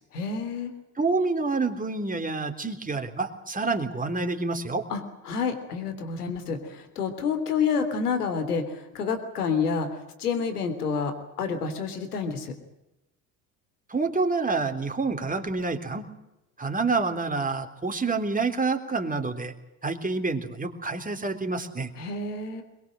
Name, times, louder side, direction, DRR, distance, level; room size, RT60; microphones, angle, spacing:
voice 1, 0.1-0.7 4.9-12.5 22.0-22.6, left 5 dB, 90° left, 9 dB, 3.4 m, -29 dB
voice 2, 1.0-4.8 13.9-16.0 16.6-19.5 19.8-21.9, right 3 dB, 20° right, 5 dB, 3.6 m, -28 dB
22.5 x 22.5 x 7.8 m, 0.93 s
hypercardioid pair, 65°, 45 cm